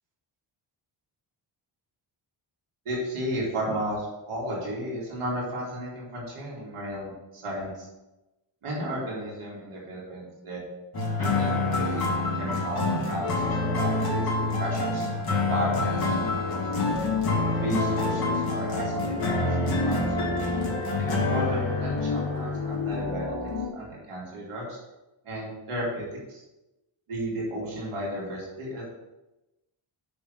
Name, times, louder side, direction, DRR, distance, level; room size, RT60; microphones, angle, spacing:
voice 1, 2.8-7.9 8.6-10.6 11.2-15.1 15.5-16.9 17.6-20.4 21.2-23.3 23.7-24.8 25.2-26.4 27.1-28.8, right 1 dB, 80° right, -5 dB, 2.8 m, -34 dB
sound 1, 10.9-23.2, left 2 dB, 45° left, 2.4 m, -27 dB
sound 2, 16.0-23.7, left 5 dB, 65° left, 2.6 m, -33 dB
7.0 x 6.1 x 6.3 m, 1.0 s
wide cardioid pair, 170°, 50 cm